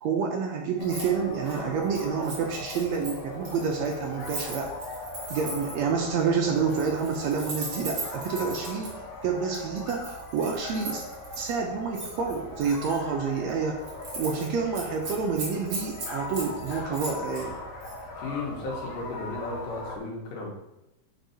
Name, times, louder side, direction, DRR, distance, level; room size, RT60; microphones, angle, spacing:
voice 1, 0.0-4.7 5.3-11.0 11.4-13.8 14.1-17.6, right 5 dB, 75° right, 2 dB, 1.7 m, -28 dB
sound 1, 0.8-20.0, left 2 dB, 65° left, 1.9 m, -40 dB
Keys jangling, 0.8-1.1 1.4-5.9 6.6-8.9 9.5-11.5 11.9-13.0 13.4-13.5 13.8-14.5 14.7-17.4 17.8-18.0, right 2 dB, 45° right, 2.5 m, -38 dB
voice 2, 18.2-20.5, left 3 dB, 85° left, -2 dB, 2.9 m, -35 dB
8.9 x 4.5 x 2.8 m, 0.91 s
omnidirectional pair, 3.5 m